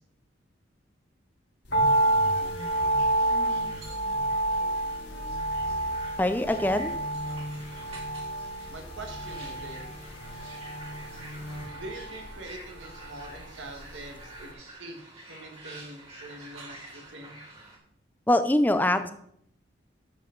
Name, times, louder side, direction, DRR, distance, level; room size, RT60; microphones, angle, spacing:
sound 1, 1.6-12.1, left 1 dB, 75° left, 3.5 m, -42 dB
sound 2, 1.7-14.0 14.3-14.4, right 1 dB, 60° left, 1.9 m, -29 dB
sound 3, 2.3-17.8, right 2 dB, 30° right, 2.6 m, -48 dB
voice 1, 6.2-6.9 18.3-19.1, left 1 dB, 10° left, 10 dB, 0.5 m, -23 dB
voice 2, 8.7-9.8 11.7-15.0 15.3-17.4, right 2 dB, 75° right, 3 dB, 1.7 m, -44 dB
11.0 x 7.0 x 3.9 m, 0.72 s
head